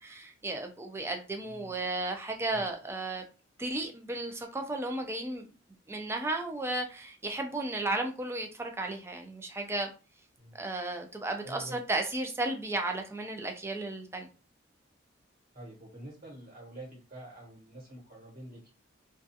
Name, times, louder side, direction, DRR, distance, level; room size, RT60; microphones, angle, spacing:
voice 1, 0.0-3.2 3.6-5.5 5.9-9.9 10.5-14.3, right 2 dB, 15° right, 0.3 m, -34 dB
voice 2, 1.4-1.8 2.5-2.6 10.4-10.6 11.4-11.8 15.5-18.6, right 1 dB, 45° right, 1.1 m, -47 dB
2.3 x 2.3 x 2.6 m
head